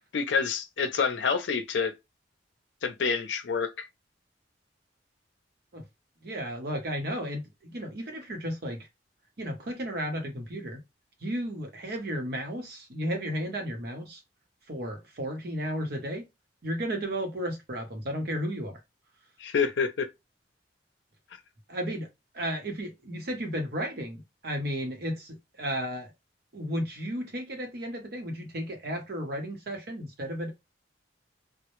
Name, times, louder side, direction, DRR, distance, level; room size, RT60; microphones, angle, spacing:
voice 1, 0.1-1.9 2.8-3.9 19.4-20.1, left 5 dB, 80° left, 0.5 m, -27 dB
voice 2, 6.2-8.9 9.4-10.8 11.2-14.2 14.7-16.2 16.6-18.8 21.7-22.1 22.3-26.1 26.5-30.5, equal, 60° right, 0.8 m, -33 dB
2.0 x 2.0 x 3.0 m
head